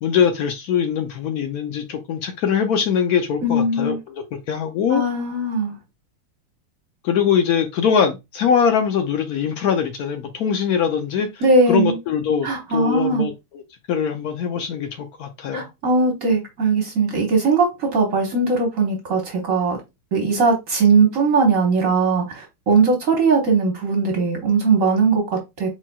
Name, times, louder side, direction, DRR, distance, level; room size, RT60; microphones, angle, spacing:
voice 1, 0.0-5.0 7.0-11.4 11.7-13.6 13.9-15.7, left 7 dB, 85° left, 0.8 m, -22 dB
voice 2, 3.4-4.0 4.9-5.7 11.4-12.0 12.4-13.3 15.5-19.8 20.1-25.7, right 3 dB, 50° right, 1.2 m, -19 dB
4.2 x 4.1 x 2.3 m
omnidirectional pair, 2.3 m